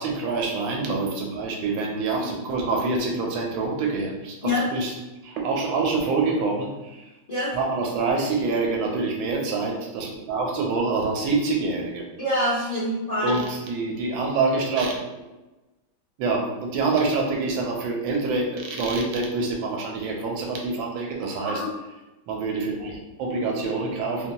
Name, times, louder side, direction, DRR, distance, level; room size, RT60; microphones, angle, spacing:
voice 1, 0.0-4.9 5.2-7.0 7.5-12.0 13.2-15.0 16.2-21.6 22.3-24.3, right 3 dB, 80° right, 0 dB, 1.4 m, -26 dB
voice 2, 12.2-13.4 21.4-21.7, left 1 dB, 70° left, -10 dB, 0.3 m, -25 dB
3.3 x 2.2 x 2.7 m, 1.1 s
omnidirectional pair, 2.1 m